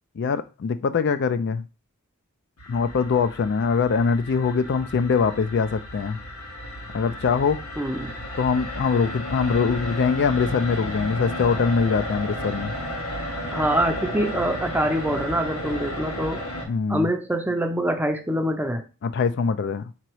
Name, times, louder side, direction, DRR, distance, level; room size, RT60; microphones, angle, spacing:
voice 1, 0.2-1.6 2.7-6.2 6.9-7.6 8.4-12.7 16.7-17.1 19.0-19.8, left 5 dB, 50° left, 0.4 m, -23 dB
sound 1, 2.6-16.6, equal, 80° left, 1.3 m, -33 dB
voice 2, 7.8-8.2 13.5-16.4 16.9-18.8, right 1 dB, 10° right, 0.5 m, -25 dB
3.9 x 3.0 x 4.6 m
head